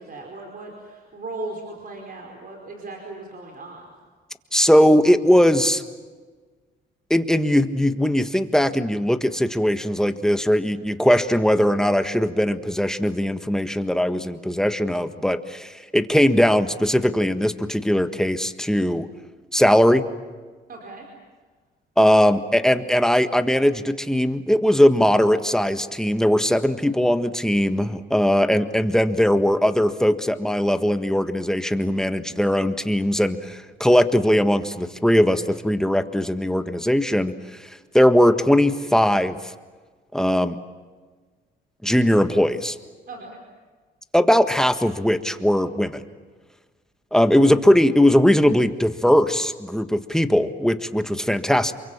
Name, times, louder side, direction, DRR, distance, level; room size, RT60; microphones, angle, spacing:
voice 1, 0.0-3.8 20.7-21.1 43.1-43.4, right 2 dB, 45° right, 1 dB, 5.0 m, -37 dB
voice 2, 4.5-5.8 7.1-19.1 19.5-20.0 22.0-37.3 37.9-39.4 40.1-40.6 41.8-42.7 44.1-46.0 47.1-51.7, equal, 5° left, 8 dB, 1.6 m, -19 dB
28.5 x 24.0 x 7.5 m, 1.4 s
cardioid pair, 90°, 20 cm